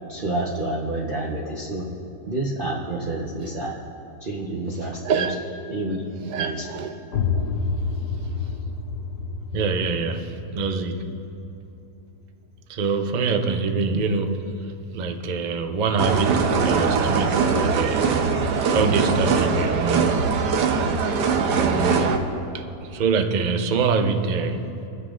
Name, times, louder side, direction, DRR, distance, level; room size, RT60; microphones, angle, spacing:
voice 1, 0.1-1.9 2.3-3.8 4.2-5.3 5.7-6.6, right 2 dB, 40° right, -4 dB, 1.0 m, -29 dB
voice 2, 5.0-5.3 6.3-7.0 7.3-7.5 9.5-11.2 12.7-18.1 18.4-20.5 21.5-22.2 22.5-24.7, right 4 dB, 60° right, 6 dB, 0.4 m, -25 dB
sound 1, 7.1-12.7, left 4 dB, 75° left, 1.2 m, -29 dB
sound 2, 16.0-22.2, right 5 dB, 85° right, 1.4 m, -21 dB
28.0 x 9.8 x 2.5 m, 2.8 s
omnidirectional pair, 1.8 m